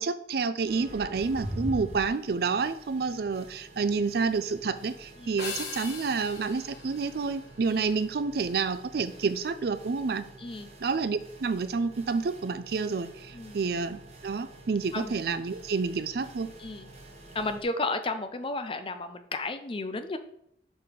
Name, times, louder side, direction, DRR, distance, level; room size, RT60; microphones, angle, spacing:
voice 1, 0.0-10.3 10.8-16.5, right 4 dB, 60° right, 12 dB, 0.4 m, -29 dB
sound 1, 0.6-17.6, right 1 dB, 40° right, 1.2 m, -45 dB
sound 2, 5.4-8.0, left 5 dB, 70° left, 1.4 m, -40 dB
voice 2, 10.4-10.7 13.3-13.6 14.9-15.2 16.6-16.9 17.3-20.2, left 2 dB, 30° left, 9 dB, 0.5 m, -33 dB
5.3 x 4.7 x 5.1 m, 0.73 s
head